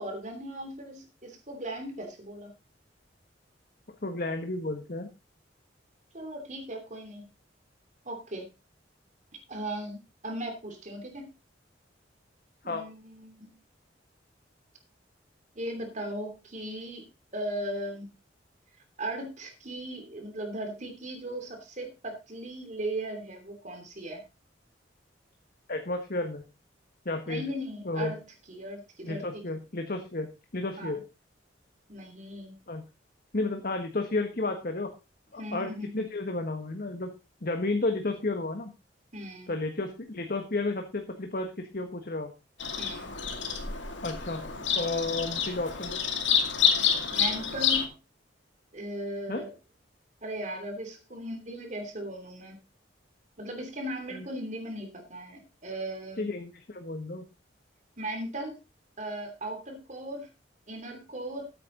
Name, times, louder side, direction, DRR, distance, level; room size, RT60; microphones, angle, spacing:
voice 1, 0.0-2.5 6.1-7.2 8.0-8.5 9.5-11.3 12.6-13.6 15.5-18.1 19.0-24.2 27.3-28.2 28.5-29.4 30.8-31.0 31.9-32.5 35.4-35.9 39.1-39.5 42.8-43.1 47.1-47.9 48.7-49.5 50.2-52.6 53.4-56.3 58.0-58.6 59.0-60.3 60.7-61.5, right 1 dB, 40° right, 4 dB, 2.9 m, -37 dB
voice 2, 4.0-5.1 12.6-12.8 25.7-26.4 27.0-27.4 27.8-28.1 29.0-30.3 30.5-31.0 32.7-32.8 33.3-34.9 35.3-37.1 37.4-38.7 39.5-42.3 44.0-44.4 44.7-46.0 49.3-49.4 54.1-54.2 56.2-57.2, left 2 dB, 50° left, 5 dB, 1.5 m, -32 dB
Bird vocalization bird call bird song, 42.6-47.9, left 7 dB, 85° left, 2.3 m, -28 dB
14.5 x 8.8 x 3.9 m, 0.29 s
head